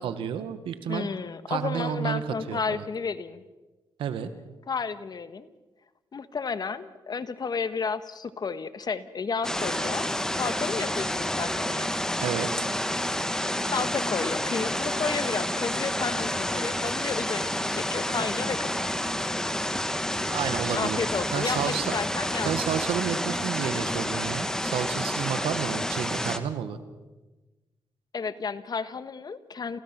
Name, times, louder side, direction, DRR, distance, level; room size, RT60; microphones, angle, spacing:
voice 1, 0.0-1.1 1.5-2.8 4.0-4.3 12.2-12.7 20.2-21.9 22.4-26.8, right 8 dB, 85° right, 11 dB, 1.5 m, -31 dB
voice 2, 0.9-3.4 4.7-5.5 6.1-10.0 10.3-11.9 13.7-18.7 20.7-22.5 28.1-29.8, left 5 dB, 50° left, 13 dB, 1.4 m, -32 dB
sound 1, 9.4-26.4, left 1 dB, 5° left, 1.9 m, -29 dB
28.5 x 16.0 x 6.0 m, 1.2 s
cardioid pair, 60°, 9 cm